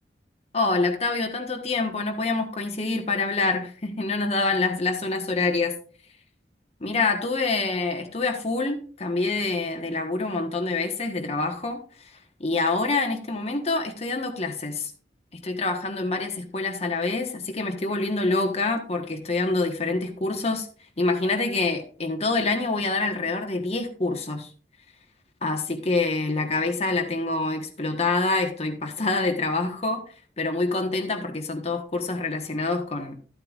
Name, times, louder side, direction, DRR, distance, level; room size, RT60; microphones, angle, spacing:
voice 1, 0.5-5.7 6.8-11.8 12.4-14.9 15.3-20.7 21.0-24.5 25.4-30.0 30.4-33.1, left 3 dB, 35° left, 3 dB, 1.2 m, -26 dB
12.0 x 8.7 x 2.4 m, 0.41 s
head